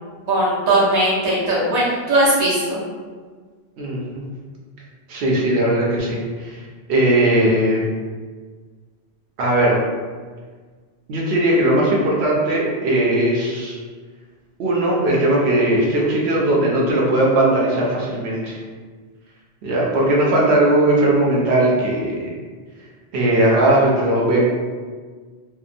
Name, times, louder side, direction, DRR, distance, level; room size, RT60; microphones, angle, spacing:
voice 1, 0.3-2.8, right 1 dB, 40° right, -9 dB, 0.9 m, -18 dB
voice 2, 3.8-4.2 5.1-6.6 6.9-7.8 9.4-9.8 11.1-13.8 14.6-18.6 19.6-22.3 23.1-24.4, right 1 dB, 90° right, -4 dB, 0.8 m, -18 dB
2.7 x 2.0 x 2.5 m, 1.5 s
omnidirectional pair, 1.1 m